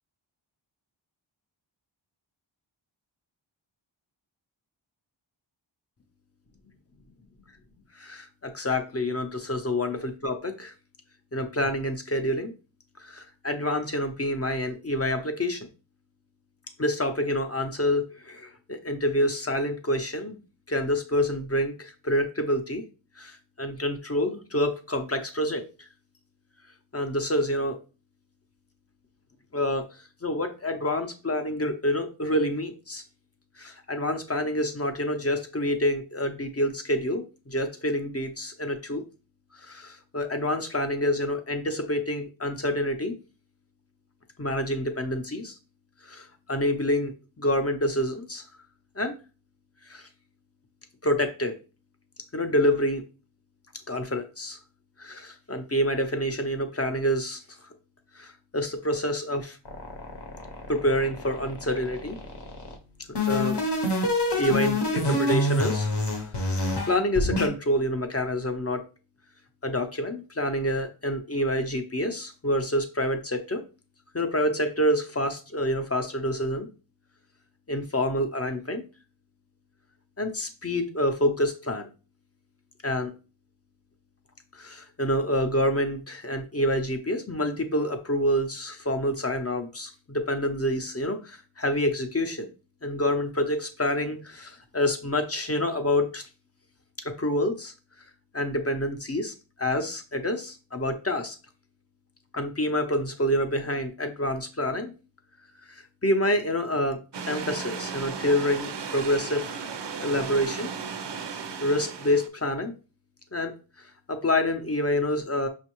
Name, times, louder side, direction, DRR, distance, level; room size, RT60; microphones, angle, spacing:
voice 1, 8.0-10.7 11.3-12.5 13.0-15.7 16.8-20.4 20.7-22.8 23.2-25.7 26.9-27.8 29.5-29.8 30.2-33.0 33.6-39.0 39.6-43.1 44.4-45.6 46.0-48.4 49.0-49.2 49.9-50.1 51.0-51.6 52.3-53.0 53.9-54.6 55.0-57.4 58.2-59.6 60.7-62.2 63.3-63.6 64.3-65.9 66.4-68.8 69.6-73.6 74.1-76.7 77.7-78.8 80.2-81.9 82.8-83.1 84.5-92.5 92.8-96.2 97.0-97.7 98.3-99.3 99.6-101.4 102.3-104.9 105.7-107.0 107.3-109.6 110.0-110.7 111.6-112.7 113.3-113.5 114.1-115.5, left 1 dB, 30° left, 6 dB, 0.6 m, -27 dB
sound 1, 59.6-62.7 63.1-67.5, left 1 dB, 55° left, 0.9 m, -26 dB
sound 2, 107.1-112.3, right 6 dB, 60° right, 0.5 m, -35 dB
5.4 x 2.4 x 2.9 m, 0.33 s
wide cardioid pair, 45°, 49 cm